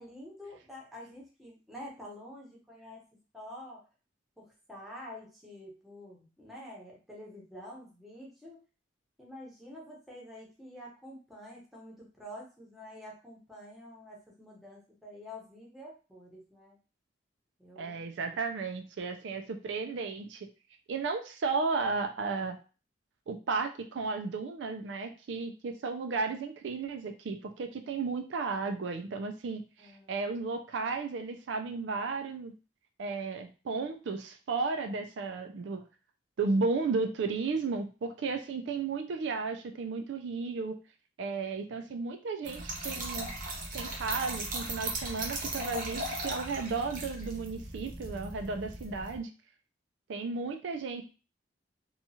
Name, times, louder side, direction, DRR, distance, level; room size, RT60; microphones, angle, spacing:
voice 1, 0.0-3.1 3.3-3.9 4.4-8.6 9.2-16.8 17.6-18.1 29.8-30.2, left 1 dB, ahead, -3 dB, 0.8 m, -48 dB
voice 2, 17.8-20.5 20.9-22.6 23.3-32.5 33.0-35.8 36.4-40.7 41.2-43.3 43.7-49.3 50.1-51.0, right 4 dB, 75° right, 5 dB, 0.4 m, -34 dB
Trickle dribble / Fill (with liquid), 42.4-49.2, right 2 dB, 50° right, 0.8 m, -37 dB
2.9 x 2.3 x 2.7 m, 0.34 s
head